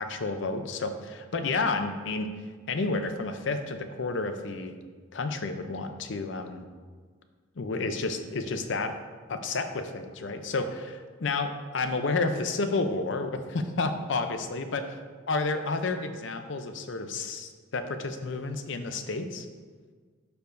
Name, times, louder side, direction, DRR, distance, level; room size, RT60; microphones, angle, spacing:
voice 1, 0.0-2.3 2.7-4.7 5.1-6.6 7.6-8.9 9.3-15.0 15.3-19.5, left 3 dB, 70° left, 8 dB, 0.6 m, -31 dB
11.5 x 4.7 x 2.6 m, 1.5 s
head